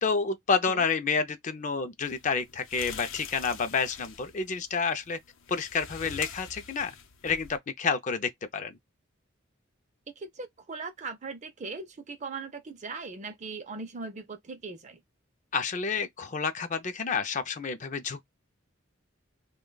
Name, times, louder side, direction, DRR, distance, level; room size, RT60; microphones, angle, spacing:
voice 1, 0.0-5.2 5.5-6.9 7.2-8.7 15.5-18.2, left 5 dB, 40° left, 0.4 m, -29 dB
sound 1, 2.0-7.6, left 7 dB, 75° left, 0.6 m, -45 dB
voice 2, 10.2-15.0, right 4 dB, 35° right, 0.5 m, -39 dB
2.9 x 2.2 x 3.8 m
head